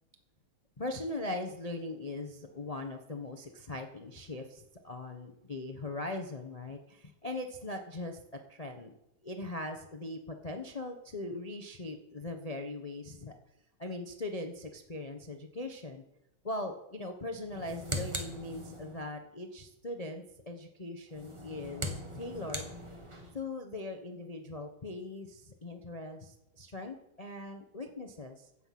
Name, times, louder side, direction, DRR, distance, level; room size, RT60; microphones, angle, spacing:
voice 1, 0.8-8.2 8.5-8.9 9.2-13.3 13.8-16.0 16.4-22.7 23.3-28.5, left 2 dB, 35° left, 5 dB, 0.5 m, -40 dB
sound 1, 17.4-19.1 21.1-23.4, equal, 15° right, 1.3 m, -40 dB
15.5 x 7.9 x 5.9 m, 0.87 s
omnidirectional pair, 2.3 m